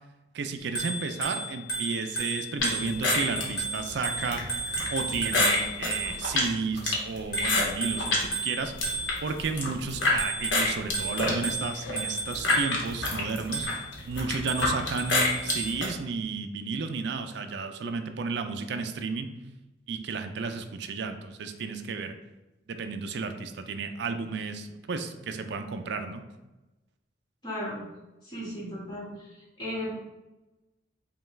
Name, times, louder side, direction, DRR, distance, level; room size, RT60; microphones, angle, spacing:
voice 1, 0.3-4.6 4.9-8.7 9.2-13.7 14.0-19.3 19.9-22.1 22.7-26.2, right 4 dB, 60° right, 7 dB, 0.4 m, -32 dB
Bicycle bell, 0.6-6.4 7.3-9.4 10.0-12.9 13.5-13.9 14.5-15.8, right 2 dB, 55° left, 1.2 m, -34 dB
sound 1, 2.6-8.3 8.6-10.2 10.5-15.9, left 2 dB, 80° left, 1.0 m, -28 dB
voice 2, 27.4-27.8 28.2-29.9, left 1 dB, 25° left, -6 dB, 1.5 m, -36 dB
5.3 x 2.3 x 3.2 m, 1.0 s
head